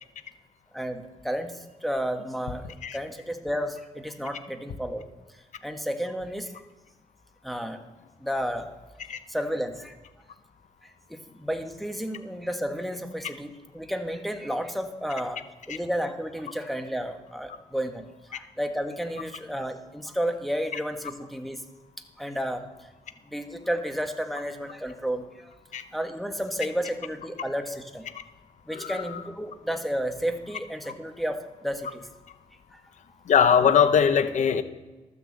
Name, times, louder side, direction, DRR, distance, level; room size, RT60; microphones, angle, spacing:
voice 1, 0.7-5.0 5.6-6.5 7.4-7.8 8.2-8.7 9.3-10.0 10.8-21.6 22.2-22.7 23.3-25.5 25.9-28.1 28.7-32.1 32.7-32.8, equal, ahead, 5 dB, 1.6 m, -32 dB
voice 2, 28.7-29.2 33.3-34.6, left 7 dB, 75° left, 10 dB, 0.9 m, -21 dB
12.5 x 6.9 x 7.7 m, 1.2 s
cardioid pair, 85°, 13 cm